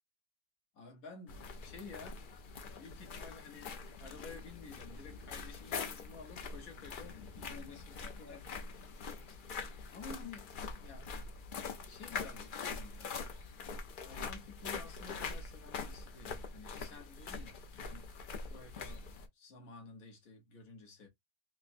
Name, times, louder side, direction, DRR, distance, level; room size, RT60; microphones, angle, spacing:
voice 1, 0.7-2.2 2.7-8.9 9.9-10.5 10.8-11.1 11.9-13.2 14.0-18.1 18.5-19.0 19.3-21.1, left 4 dB, 80° left, 1.6 m, -52 dB
sound 1, 1.3-19.3, left 5 dB, 55° left, 0.6 m, -44 dB
4.9 x 2.2 x 2.6 m
omnidirectional pair, 1.5 m